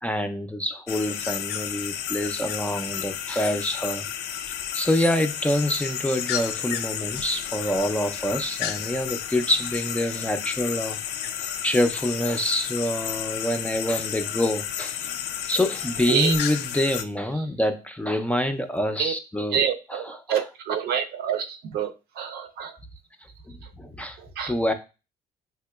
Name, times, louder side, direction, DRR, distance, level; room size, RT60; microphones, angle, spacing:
voice 1, 0.0-4.1 4.7-11.0 11.6-15.1 15.5-19.6 19.9-20.0 23.5-24.2 24.5-24.7, left 1 dB, 10° left, 0.3 m, -26 dB
sound 1, 0.9-17.0, left 9 dB, 85° left, 0.4 m, -32 dB
voice 2, 19.5-21.9 22.1-22.8 23.6-23.7 24.2-24.5, right 8 dB, 70° right, 0.5 m, -27 dB
3.5 x 2.8 x 2.2 m
cardioid pair, 110°, 17 cm